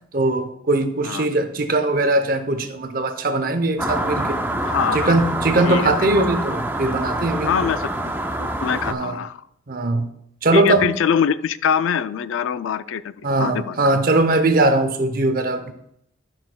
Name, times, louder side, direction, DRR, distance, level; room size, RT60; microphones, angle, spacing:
voice 1, 0.1-4.4 4.9-7.5 8.9-9.2 9.7-10.1 10.4-10.9 13.2-15.7, right 2 dB, 45° right, 9 dB, 0.7 m, -20 dB
sound 1, 3.8-8.9, right 1 dB, 10° right, 0.4 m, -26 dB
voice 2, 4.6-5.2 5.7-5.9 7.5-8.0 8.4-9.4 10.5-13.8, left 7 dB, 75° left, 15 dB, 0.3 m, -23 dB
12.0 x 6.0 x 2.2 m, 0.75 s
head